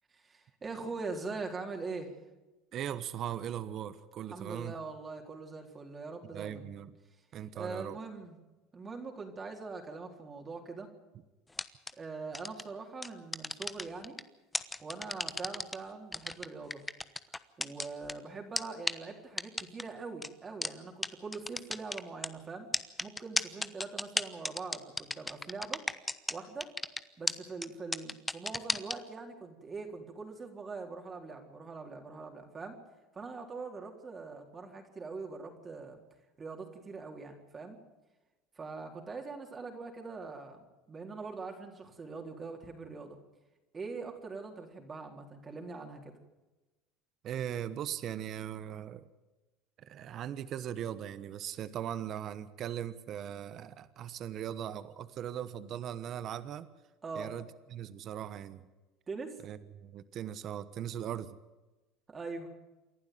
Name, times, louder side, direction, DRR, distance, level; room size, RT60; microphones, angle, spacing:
voice 1, 0.1-2.1 4.3-6.7 7.5-8.4 8.7-10.9 12.0-14.2 14.8-16.8 17.6-22.7 23.0-25.8 26.3-26.7 27.2-32.8 33.1-36.0 36.4-37.8 38.6-43.2 43.7-46.1 57.0-57.3 59.1-59.4 62.1-62.5, right 4 dB, 30° right, 2 dB, 3.9 m, -42 dB
voice 2, 2.7-4.7 6.2-7.0 7.3-8.0 47.2-49.0 49.8-56.7 57.1-58.7 59.4-61.4, right 10 dB, 50° right, 14 dB, 1.2 m, -39 dB
sound 1, 11.5-11.9 12.3-12.6 13.0-14.2 14.5-15.7 16.1-18.1 18.6-18.7 18.9-19.0 19.4-19.8 20.2-20.3 20.6-20.7 21.0-21.1 21.3-22.3 22.7-26.3 26.6-27.0 27.3-27.4 27.6-27.7 27.9-28.9, left 2 dB, 15° left, 1.1 m, -32 dB
28.0 x 11.5 x 9.4 m, 1.1 s
hypercardioid pair, 90°, 0 cm